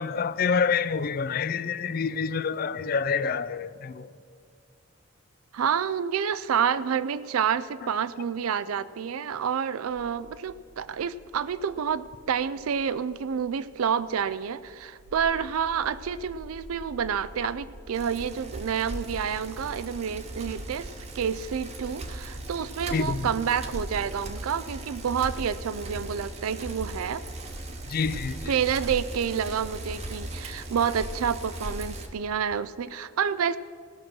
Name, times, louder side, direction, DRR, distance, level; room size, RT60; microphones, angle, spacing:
voice 1, 0.0-4.1 22.9-23.3 27.9-28.5, left 5 dB, 45° left, 0.3 m, -27 dB
voice 2, 5.5-27.2 28.5-33.6, right 7 dB, 90° right, 0.4 m, -29 dB
sound 1, 9.9-24.8, right 1 dB, 65° right, 0.9 m, -49 dB
Bicycle, 17.9-32.1, right 1 dB, 30° right, 0.9 m, -38 dB
17.0 x 6.2 x 6.1 m
head